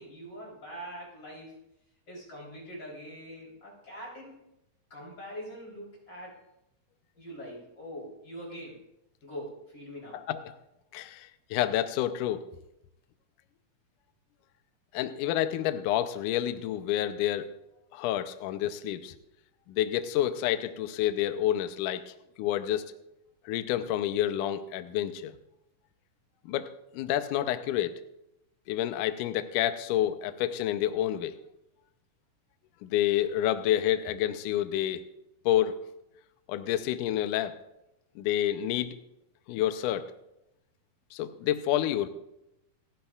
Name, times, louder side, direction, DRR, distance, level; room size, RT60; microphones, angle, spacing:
voice 1, 0.0-1.6 2.1-4.4 4.9-6.4 7.2-8.8 9.2-10.2, equal, 30° left, -4 dB, 4.1 m, -43 dB
voice 2, 10.9-12.4 14.9-17.5 17.9-19.1 19.7-22.8 23.5-25.3 26.5-27.9 28.7-31.4 32.8-35.0 35.5-35.8 36.5-37.5 38.2-39.0 39.5-40.1 41.1-42.1, left 12 dB, 75° left, 10 dB, 2.0 m, -29 dB
28.0 x 10.5 x 2.4 m, 0.85 s
omnidirectional pair, 4.1 m